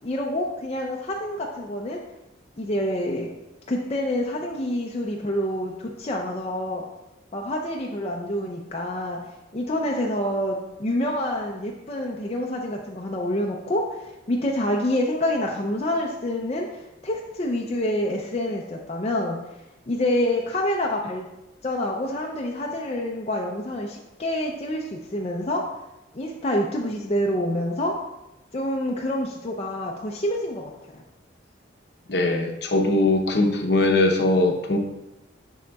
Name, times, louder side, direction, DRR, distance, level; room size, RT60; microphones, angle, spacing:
voice 1, 0.0-2.0 2.6-3.3 3.7-6.8 7.3-9.2 9.5-19.4 19.9-21.3 21.6-25.6 26.1-27.9 28.5-31.0, left 1 dB, 30° left, -1 dB, 0.4 m, -27 dB
voice 2, 32.1-34.8, left 2 dB, 60° left, 3 dB, 0.7 m, -21 dB
6.5 x 6.4 x 2.3 m, 0.95 s
head